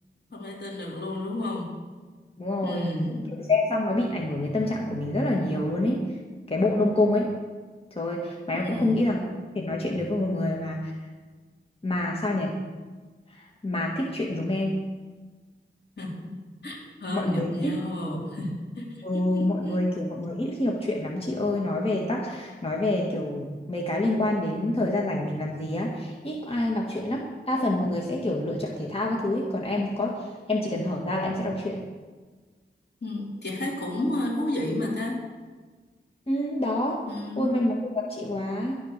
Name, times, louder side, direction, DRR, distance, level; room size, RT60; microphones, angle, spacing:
voice 1, 0.3-1.7 2.6-3.5 8.5-8.9 16.0-16.3 16.6-19.8 33.0-35.2 37.1-37.6, left 1 dB, 60° left, -2 dB, 3.6 m, -31 dB
voice 2, 2.4-2.9 3.3-6.0 6.5-7.3 8.0-9.2 9.6-10.9 11.8-12.5 13.3-14.8 17.1-17.7 19.0-31.8 36.3-37.0 37.4-38.8, left 1 dB, 30° left, -1 dB, 1.8 m, -27 dB
12.0 x 10.0 x 6.6 m, 1.4 s
wide cardioid pair, 70°, 19 cm